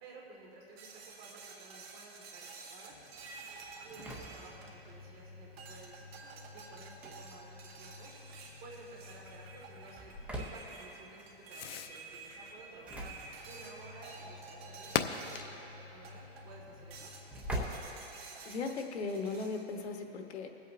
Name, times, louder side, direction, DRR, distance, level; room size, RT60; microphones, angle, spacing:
voice 1, 0.0-3.0 3.8-8.1 8.6-13.1 13.5-17.1, right 3 dB, 30° right, -2 dB, 1.6 m, -54 dB
sound 1, 0.8-5.1 5.6-15.6 16.0-16.5 16.9-19.6, right 4 dB, 70° right, 1.5 m, -51 dB
Fireworks, 2.9-17.5, left 9 dB, 65° left, 0.6 m, -46 dB
Engine / Slam, 3.6-18.8, equal, 5° right, 0.5 m, -47 dB
voice 2, 18.4-20.5, left 4 dB, 85° left, 4 dB, 1.1 m, -37 dB
23.5 x 8.2 x 2.5 m, 2.9 s
hypercardioid pair, 155°, 32 cm